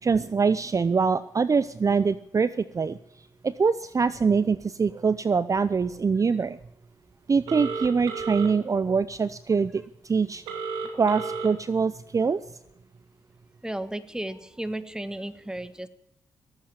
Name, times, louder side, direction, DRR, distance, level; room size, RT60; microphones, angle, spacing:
voice 1, 0.0-3.0 3.4-6.6 7.3-10.4 10.9-12.4, right 5 dB, 40° right, 15 dB, 0.7 m, -24 dB
Telephone, 7.5-8.5 10.5-11.5, right 5 dB, 90° right, 2.6 m, -32 dB
voice 2, 13.6-15.9, right 1 dB, 10° right, 13 dB, 1.5 m, -34 dB
17.5 x 8.6 x 8.7 m, 0.82 s
supercardioid pair, 50°, 9 cm